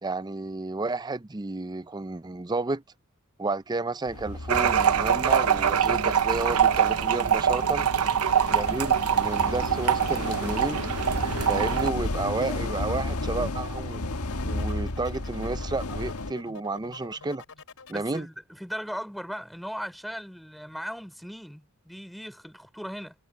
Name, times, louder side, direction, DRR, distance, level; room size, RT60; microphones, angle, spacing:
voice 1, 0.0-2.8 3.4-7.9 8.5-10.8 11.4-14.0 14.4-17.4 17.9-18.3, right 3 dB, 20° right, 0.5 m, -31 dB
sound 1, 4.1-16.3, left 2 dB, 85° left, 1.5 m, -33 dB
sound 2, 4.5-11.9, right 8 dB, 85° right, 0.9 m, -24 dB
sound 3, 6.2-18.2, left 4 dB, 65° left, 4.2 m, -47 dB
voice 2, 17.9-23.1, equal, ahead, 3.8 m, -38 dB
head